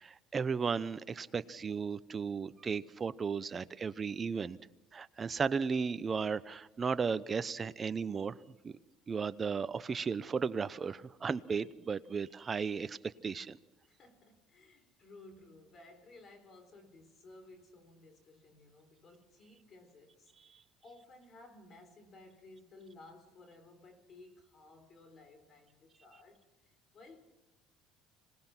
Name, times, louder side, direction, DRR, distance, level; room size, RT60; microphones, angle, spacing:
voice 1, 0.0-4.6 4.9-8.3 8.6-8.7 9.1-13.0 13.2-13.6, right 5 dB, 30° right, 15 dB, 0.8 m, -35 dB
voice 2, 13.9-27.2, left 2 dB, 40° left, 7 dB, 3.8 m, -57 dB
26.0 x 18.5 x 6.1 m, 0.98 s
cardioid pair, 115°, 0 cm